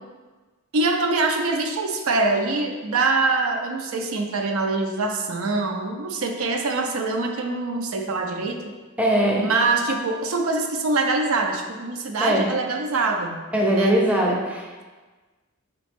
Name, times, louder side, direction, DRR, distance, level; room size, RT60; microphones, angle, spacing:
voice 1, 0.7-8.6 9.4-13.4 13.7-14.0 14.2-14.4, right 3 dB, 85° right, 4 dB, 0.5 m, -24 dB
voice 2, 9.0-9.4 12.2-12.5 13.5-14.8, right 1 dB, 5° right, -2 dB, 0.5 m, -21 dB
4.9 x 2.9 x 3.5 m, 1.3 s
head